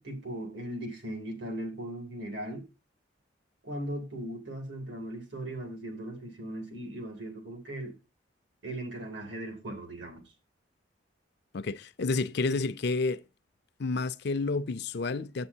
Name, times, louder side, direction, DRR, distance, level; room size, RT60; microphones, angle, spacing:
voice 1, 0.0-2.7 3.6-8.0 8.6-10.2, right 1 dB, 65° right, 2.6 m, -38 dB
voice 2, 11.5-13.2 13.8-15.5, left 3 dB, 55° left, 0.5 m, -30 dB
9.5 x 7.9 x 2.7 m
head